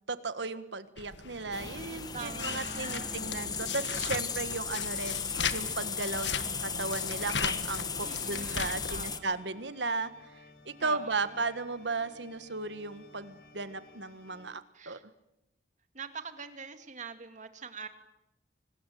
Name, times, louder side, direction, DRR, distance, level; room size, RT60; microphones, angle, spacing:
voice 1, 0.1-10.1 10.6-15.0, right 3 dB, 85° right, 12 dB, 1.6 m, -35 dB
sound 1, 1.0-9.0, left 6 dB, 85° left, 1.6 m, -38 dB
sound 2, 1.5-9.2, left 5 dB, 25° left, 1.4 m, -36 dB
voice 2, 2.1-3.2 8.0-9.4 10.8-11.4 14.7-15.0 15.9-17.9, right 5 dB, 45° right, 8 dB, 2.3 m, -44 dB
sound 3, 6.3-14.5, left 2 dB, 65° left, 5.4 m, -57 dB
24.5 x 20.0 x 9.3 m, 0.89 s
head